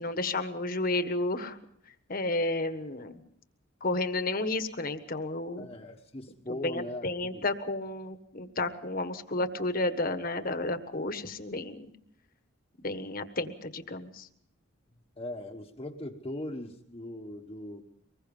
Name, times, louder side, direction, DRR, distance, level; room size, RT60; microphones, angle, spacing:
voice 1, 0.0-1.6 2.1-3.2 3.8-5.7 6.6-11.9 12.8-14.3, left 2 dB, 45° left, 9 dB, 1.5 m, -32 dB
voice 2, 5.6-7.4 15.2-17.8, left 1 dB, 25° left, -2 dB, 1.3 m, -39 dB
24.5 x 21.0 x 5.5 m, 0.71 s
head